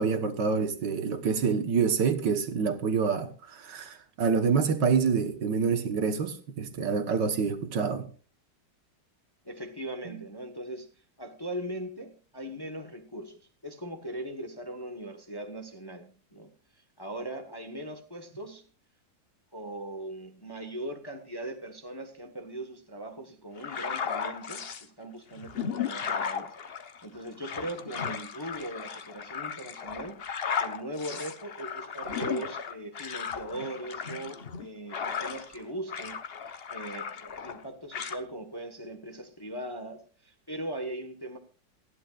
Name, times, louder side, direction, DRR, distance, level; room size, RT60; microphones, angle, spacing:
voice 1, 0.0-8.1 10.1-10.2, right 5 dB, 70° right, 1.9 m, -27 dB
voice 2, 9.4-10.9 11.2-18.7 19.5-26.5 27.0-30.2 30.6-41.4, right 1 dB, 15° left, 1.0 m, -40 dB
sound 1, 23.6-24.8 25.3-35.6 35.9-37.6 37.9-38.2, left 7 dB, 45° left, 0.9 m, -35 dB
27.5 x 10.5 x 2.4 m
omnidirectional pair, 2.0 m